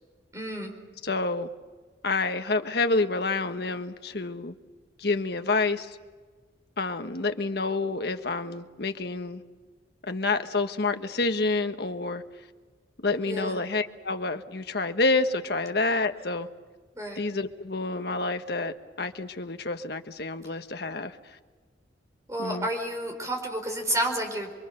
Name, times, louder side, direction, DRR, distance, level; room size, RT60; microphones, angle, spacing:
voice 1, 0.3-0.8 13.3-13.6 17.0-17.2 22.3-24.5, right 1 dB, 15° right, 3 dB, 4.3 m, -30 dB
voice 2, 1.0-1.5 2.0-4.5 5.0-6.0 6.8-9.4 10.1-12.2 13.0-16.5 17.2-21.2 22.4-22.7, left 3 dB, 60° left, 7 dB, 1.3 m, -28 dB
27.5 x 23.5 x 6.8 m, 1.4 s
head